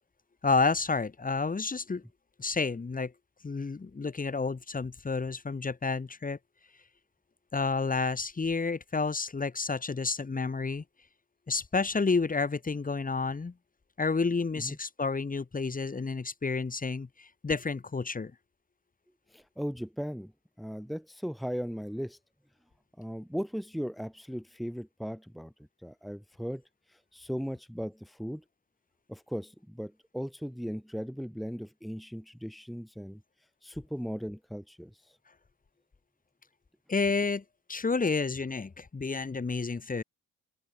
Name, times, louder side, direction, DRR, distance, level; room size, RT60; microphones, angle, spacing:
voice 1, 0.4-2.0 2.4-3.1 3.4-6.4 7.5-10.8 11.5-13.5 14.0-18.3 36.9-37.4 37.7-40.0, left 4 dB, 25° left, 4.0 m, -30 dB
voice 2, 19.3-20.3 20.6-22.2 23.0-25.5 25.8-26.6 26.9-28.4 29.1-33.2 33.6-35.2, equal, ahead, 1.7 m, -37 dB
open air
cardioid pair, 90°, 30 cm